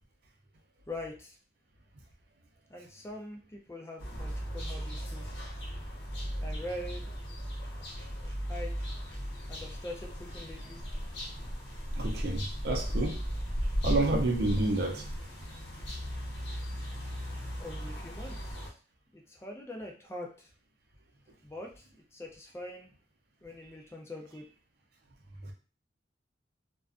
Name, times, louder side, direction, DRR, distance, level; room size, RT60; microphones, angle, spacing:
voice 1, 0.9-1.4 2.7-5.3 6.4-7.1 8.5-8.7 9.5-10.8 17.3-18.7 19.1-20.5 21.4-21.8 22.1-22.9 23.4-24.5, left 1 dB, 15° left, 0.4 m, -43 dB
sound 1, 4.0-18.7, equal, 70° left, 0.7 m, -36 dB
voice 2, 11.9-13.2 13.8-15.1, right 2 dB, 60° right, 0.5 m, -29 dB
2.4 x 2.2 x 2.4 m
head